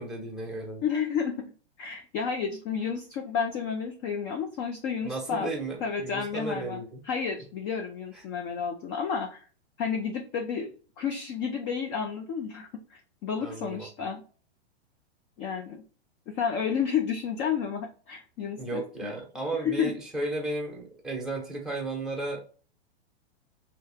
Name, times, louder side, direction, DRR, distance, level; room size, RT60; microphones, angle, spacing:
voice 1, 0.0-0.8 5.0-7.0 13.4-14.1 18.6-22.4, right 2 dB, ahead, -1 dB, 0.9 m, -34 dB
voice 2, 0.8-1.4 1.8-5.5 5.8-6.8 7.0-9.4 9.8-10.7 11.0-14.2 15.4-15.8 16.3-19.1 19.6-19.9, left 7 dB, 25° left, 4 dB, 0.3 m, -31 dB
3.2 x 2.8 x 3.4 m, 0.40 s
hypercardioid pair, 135°, 32 cm